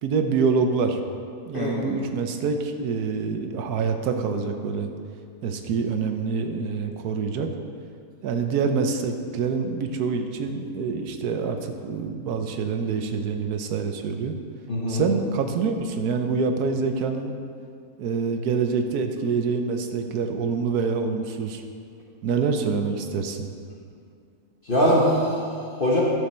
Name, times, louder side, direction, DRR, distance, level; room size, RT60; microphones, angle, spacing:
voice 1, 0.0-1.0 1.5-4.9 5.4-7.5 8.2-14.3 14.9-17.3 18.0-21.6 22.2-23.5, right 5 dB, 85° right, 6 dB, 1.3 m, -26 dB
voice 2, 1.5-1.9 14.7-15.0 24.7-26.0, equal, 40° left, -5 dB, 1.3 m, -22 dB
11.5 x 6.9 x 4.3 m, 2.3 s
omnidirectional pair, 1.6 m